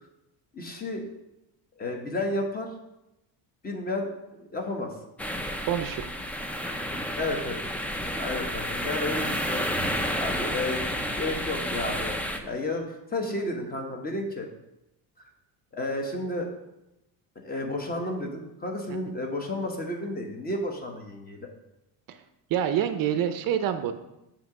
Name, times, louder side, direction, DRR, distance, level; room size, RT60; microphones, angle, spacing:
voice 1, 0.5-1.0 1.8-2.7 3.6-4.9 7.2-7.6 8.2-9.7 10.2-10.9 11.2-14.5 15.7-16.5 17.4-21.4, left 2 dB, 20° left, 2 dB, 1.0 m, -32 dB
sound 1, 5.2-12.4, equal, 5° left, 0.3 m, -30 dB
voice 2, 5.7-6.1 22.1-22.2 22.5-23.9, right 9 dB, 55° right, 9 dB, 0.5 m, -26 dB
7.3 x 2.9 x 5.9 m, 0.92 s
cardioid pair, 125°, 40 cm